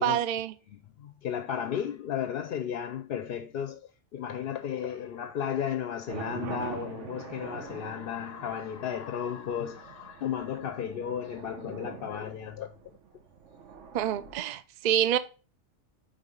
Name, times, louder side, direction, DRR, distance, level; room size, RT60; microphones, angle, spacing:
voice 1, 0.0-0.5 13.9-15.2, right 10 dB, 60° right, 0.4 m, -27 dB
voice 2, 0.7-3.8 4.1-12.7, left 9 dB, 60° left, 0.7 m, -34 dB
sound 1, 6.1-14.3, right 7 dB, 85° right, 1.2 m, -44 dB
5.3 x 3.6 x 5.2 m
omnidirectional pair, 1.2 m